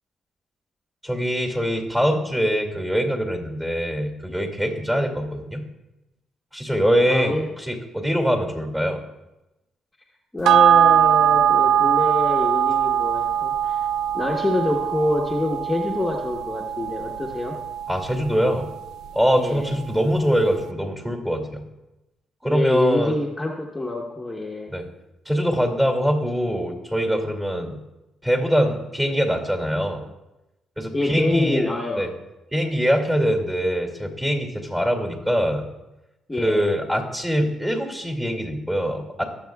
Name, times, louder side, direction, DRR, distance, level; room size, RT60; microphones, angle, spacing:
voice 1, 1.0-5.6 6.5-9.0 17.9-18.7 19.1-21.6 22.4-23.2 24.7-24.9 25.3-27.8 28.2-30.0 30.8-31.7 32.0-32.1 32.5-35.6 36.4-39.2, equal, 10° right, 2 dB, 2.5 m, -23 dB
voice 2, 7.1-7.5 10.3-13.8 14.1-17.6 19.4-19.7 22.5-24.7 30.9-32.1 36.3-36.6, left 2 dB, 15° left, -2 dB, 1.2 m, -26 dB
sound 1, 10.4-19.2 19.6-19.7, right 9 dB, 80° right, 0.4 m, -21 dB
22.0 x 7.5 x 2.4 m, 0.97 s
cardioid pair, 90°, 0 cm